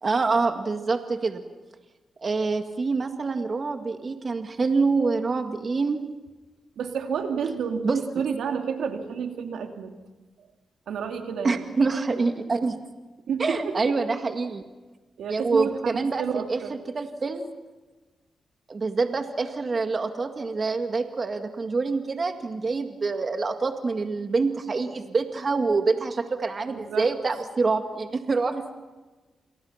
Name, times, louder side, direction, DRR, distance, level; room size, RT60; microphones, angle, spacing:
voice 1, 0.0-1.4 2.2-6.0 7.8-8.3 11.4-12.8 13.4-14.6 15.3-16.6 16.9-17.5 18.7-28.7, right 4 dB, 40° right, 6 dB, 2.1 m, -26 dB
voice 2, 6.8-9.9 10.9-11.6 13.3-13.7 15.2-16.7 26.7-27.1, right 6 dB, 85° right, 4 dB, 3.0 m, -30 dB
29.0 x 29.0 x 5.9 m, 1.2 s
cardioid pair, 95°, 0 cm